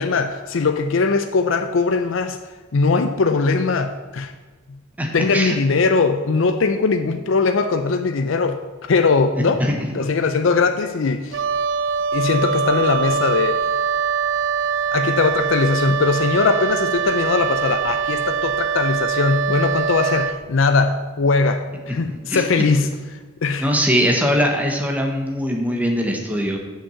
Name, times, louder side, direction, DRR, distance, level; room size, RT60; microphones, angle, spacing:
voice 1, 0.0-2.4 2.7-4.3 5.1-8.6 8.9-9.6 9.9-11.4 12.1-13.6 14.9-22.9 23.4-23.7, left 4 dB, 75° left, 7 dB, 0.5 m, -20 dB
voice 2, 5.0-5.6 9.4-10.2 22.1-22.4 23.6-26.6, equal, 10° right, 2 dB, 1.2 m, -22 dB
Wind instrument woodwind instrument, 11.3-20.4, right 6 dB, 60° right, 0.4 m, -23 dB
7.2 x 5.9 x 7.1 m, 1.3 s
head